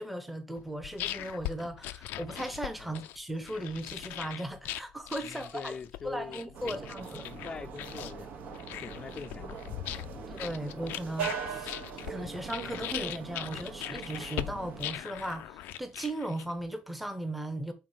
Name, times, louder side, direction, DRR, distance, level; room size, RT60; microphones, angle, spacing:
voice 1, 0.0-5.7 6.0-7.3 10.3-11.8 12.1-17.7, right 1 dB, ahead, 0.8 m, -37 dB
sound 1, 0.6-16.7, left 14 dB, 85° left, 0.5 m, -40 dB
voice 2, 5.2-6.8 7.2-9.6 10.1-10.2, left 5 dB, 25° left, 0.5 m, -44 dB
sound 2, 6.5-14.9, right 6 dB, 60° right, 1.2 m, -41 dB
5.7 x 4.2 x 4.8 m
cardioid pair, 165°, 3 cm